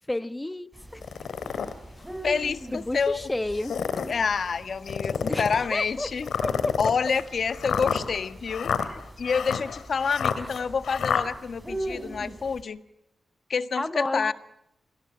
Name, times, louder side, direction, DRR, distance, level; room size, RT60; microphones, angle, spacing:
voice 1, 0.1-1.0 2.7-3.7 5.0-6.1 6.4-6.8 13.8-14.3, left 1 dB, 15° left, 13 dB, 1.3 m, -31 dB
sound 1, 0.7-12.6, right 1 dB, 10° right, 6.0 m, -42 dB
ronquido tobby, 1.0-1.7 2.4-2.5 3.5-4.2 4.9-5.6 6.3-11.2, left 7 dB, 85° left, 2.3 m, -29 dB
voice 2, 2.2-3.3 4.1-6.3 6.8-12.8 13.5-14.3, left 5 dB, 65° left, 11 dB, 1.5 m, -28 dB
29.5 x 21.0 x 8.8 m, 0.82 s
cardioid pair, 70°, 0 cm